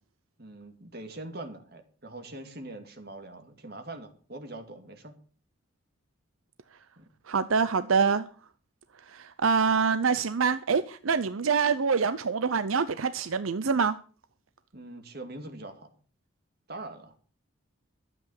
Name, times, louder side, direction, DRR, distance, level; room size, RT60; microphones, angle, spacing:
voice 1, 0.4-5.1 7.0-7.1 14.7-15.9 16.7-17.2, right 2 dB, 50° right, 2.3 m, -42 dB
voice 2, 7.3-8.3 9.1-14.0, right 5 dB, 85° right, 0.6 m, -25 dB
12.5 x 8.1 x 7.2 m
head